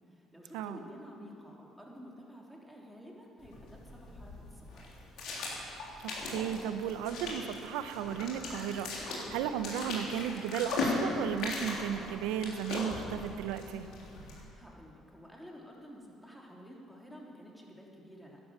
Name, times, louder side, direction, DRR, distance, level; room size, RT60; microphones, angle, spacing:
voice 1, 0.3-4.3 4.7-5.1 14.5-18.4, equal, ahead, -2 dB, 3.3 m, -51 dB
sound 1, 3.4-14.4, left 2 dB, 70° left, 3.5 m, -38 dB
voice 2, 6.0-13.9, right 9 dB, 85° right, 10 dB, 0.7 m, -35 dB
11.5 x 11.0 x 7.6 m, 2.7 s
supercardioid pair, 70°, 0 cm